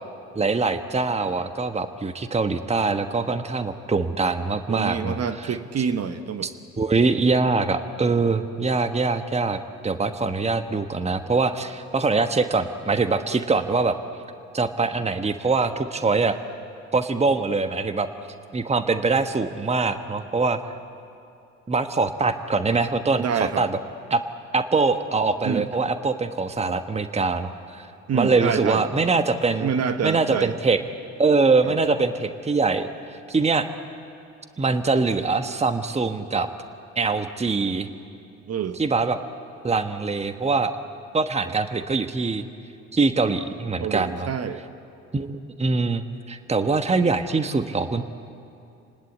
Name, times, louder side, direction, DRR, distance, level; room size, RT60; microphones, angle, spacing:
voice 1, 0.3-5.5 6.4-6.5 6.8-14.0 14.5-16.4 16.9-18.1 18.5-20.6 21.7-23.8 24.1-24.2 24.5-27.9 28.1-29.7 30.0-30.8 31.2-32.9 33.3-33.7 34.6-36.5 36.9-37.9 38.8-39.2 39.6-40.7 41.1-42.5 42.9-44.3 45.1-48.0, right 4 dB, 20° right, 9 dB, 1.3 m, -23 dB
voice 2, 4.7-6.5 23.2-23.6 25.4-25.7 28.1-28.8 29.6-30.5 31.6-31.8 38.5-38.8 43.8-44.6, right 7 dB, 45° right, 9 dB, 1.5 m, -26 dB
28.5 x 19.5 x 8.5 m, 2.6 s
hypercardioid pair, 60°, 35 cm